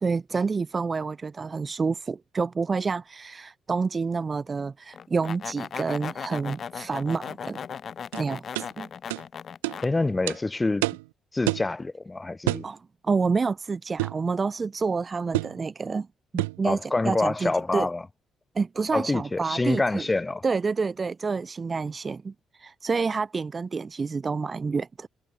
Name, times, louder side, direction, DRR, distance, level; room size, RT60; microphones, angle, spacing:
voice 1, 0.0-7.6 8.2-8.4 8.8-8.9 12.6-16.1 16.3-17.9 18.5-20.0 20.4-22.3 22.6-25.1, right 4 dB, 35° right, 0.8 m, -28 dB
sound 1, 4.9-9.9, left 7 dB, 50° left, 2.5 m, -37 dB
sound 2, 8.1-8.2 8.5-8.7 9.1-9.2 9.6-9.8 10.3-10.4 10.8-11.1 11.5-11.7 12.5-12.7 14.0-14.2 15.3-15.6 16.4-16.6, right 23 dB, 85° right, 0.5 m, -28 dB
voice 2, 9.8-10.9 11.3-12.6 16.6-18.0 18.9-20.4, left 2 dB, 25° left, 3.3 m, -26 dB
hypercardioid pair, 50°, 0 cm